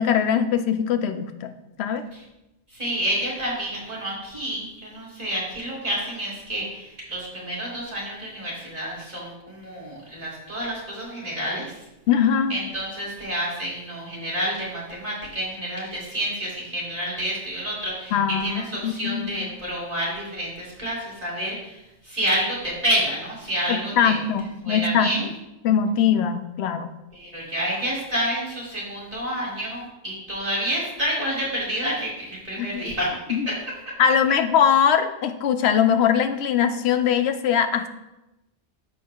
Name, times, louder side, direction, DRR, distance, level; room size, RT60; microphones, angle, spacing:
voice 1, 0.0-1.5 1.8-2.0 12.1-12.6 18.1-19.4 23.7-25.1 25.6-26.9 32.6-32.7 33.3-33.5 34.0-37.9, left 8 dB, 70° left, 9 dB, 0.8 m, -21 dB
voice 2, 2.7-11.8 12.5-24.2 24.6-25.3 27.1-33.1 33.5-33.6 33.9-34.0, equal, 35° right, -6 dB, 2.5 m, -29 dB
13.5 x 4.5 x 2.4 m, 0.96 s
omnidirectional pair, 1.2 m